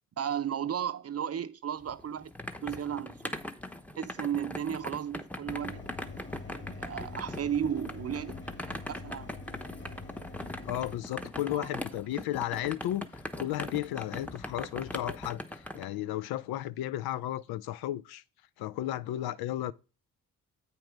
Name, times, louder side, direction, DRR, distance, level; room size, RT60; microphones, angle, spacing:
voice 1, 0.2-2.3 2.6-3.3 4.0-5.8 6.3-8.4 8.9-9.3 11.5-11.7, right 9 dB, 35° right, 0.7 m, -34 dB
sound 1, 1.8-15.8, left 1 dB, 5° left, 0.9 m, -41 dB
Mechanisms, 5.5-10.9, left 3 dB, 30° left, 1.8 m, -45 dB
voice 2, 10.6-18.2 18.6-19.7, left 13 dB, 65° left, 0.5 m, -34 dB
8.1 x 4.4 x 5.1 m
hypercardioid pair, 45°, 40 cm